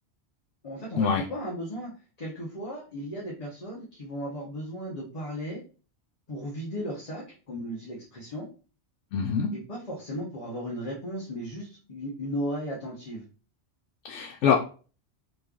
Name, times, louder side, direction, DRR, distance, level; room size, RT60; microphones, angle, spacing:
voice 1, 0.6-1.9 2.2-5.6 6.3-8.5 9.5-13.2, equal, 35° left, -5 dB, 0.9 m, -35 dB
voice 2, 9.1-9.5 14.0-14.6, left 6 dB, 85° left, 0 dB, 0.9 m, -24 dB
3.1 x 2.4 x 3.6 m, 0.37 s
omnidirectional pair, 1.2 m